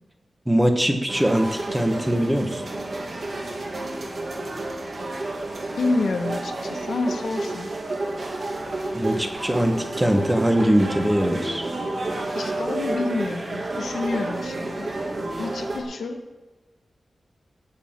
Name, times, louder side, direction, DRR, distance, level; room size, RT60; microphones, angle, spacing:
voice 1, 0.5-2.6 8.9-11.7, equal, 5° right, 5 dB, 1.3 m, -22 dB
sound 1, 1.1-15.8, right 2 dB, 40° right, 2.1 m, -30 dB
voice 2, 5.7-7.7 12.3-14.9 15.4-16.2, left 3 dB, 85° left, 6 dB, 1.2 m, -28 dB
18.0 x 7.0 x 5.9 m, 1.2 s
wide cardioid pair, 170°, 0 cm